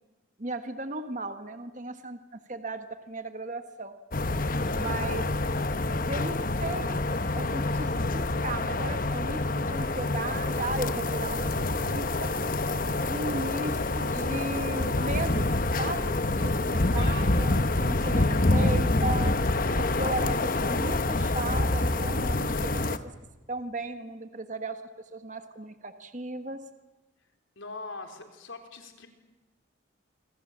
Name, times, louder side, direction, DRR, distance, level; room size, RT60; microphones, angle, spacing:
voice 1, 0.4-3.9 4.8-5.2 6.1-7.0 7.3-12.3 13.0-15.5 15.8-19.3 19.8-23.0 23.5-24.8 25.1-26.6, right 2 dB, 40° right, 8 dB, 1.4 m, -36 dB
sound 1, 4.1-23.0, left 2 dB, 45° left, 1.1 m, -27 dB
voice 2, 4.7-5.0 16.9-17.4 27.6-29.1, left 3 dB, 75° left, 5 dB, 4.1 m, -42 dB
27.5 x 25.0 x 7.5 m, 1.2 s
head